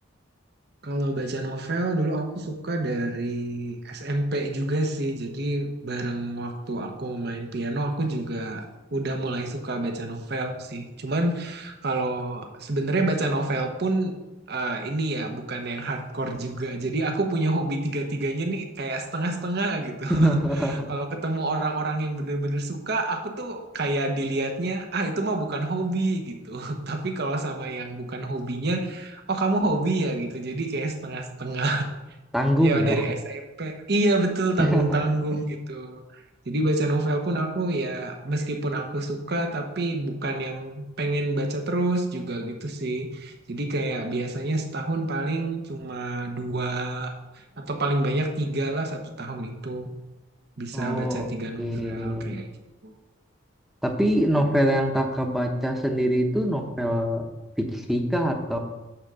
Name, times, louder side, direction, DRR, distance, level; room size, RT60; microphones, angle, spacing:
voice 1, 0.8-8.6 8.9-14.2 14.5-31.9 32.6-49.9 50.6-52.5 52.8-52.9, right 2 dB, 60° right, 4 dB, 1.0 m, -28 dB
voice 2, 20.1-20.8 32.3-33.1 34.6-35.0 50.7-51.3 51.6-52.3 53.8-57.3 57.6-58.6, equal, ahead, 3 dB, 0.8 m, -24 dB
8.8 x 3.7 x 6.7 m, 1.1 s
head